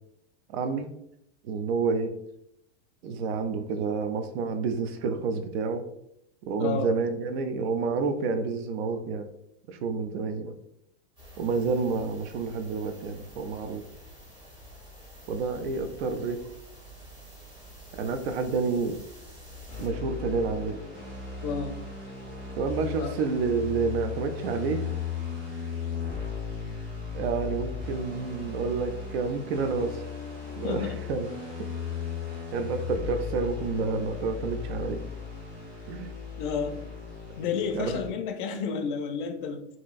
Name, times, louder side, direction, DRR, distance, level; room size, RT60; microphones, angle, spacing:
voice 1, 0.5-0.9 1.4-2.1 3.0-5.8 6.4-9.3 9.7-10.5 11.4-13.8 15.3-16.4 17.9-19.0 19.8-20.8 22.6-24.8 27.1-30.0 30.6-31.6 32.5-35.0 35.9-36.1 37.7-38.0, right 4 dB, 65° right, 8 dB, 0.5 m, -29 dB
voice 2, 6.6-6.9 21.4-21.8 23.0-23.1 30.6-31.0 36.4-36.9 37.4-39.7, left 6 dB, 45° left, 6 dB, 0.4 m, -31 dB
sound 1, 11.2-19.9, equal, 15° right, 0.8 m, -48 dB
sound 2, 19.7-38.1, left 6 dB, 30° right, 1.2 m, -36 dB
2.8 x 2.6 x 2.3 m, 0.77 s
supercardioid pair, 140°, 34 cm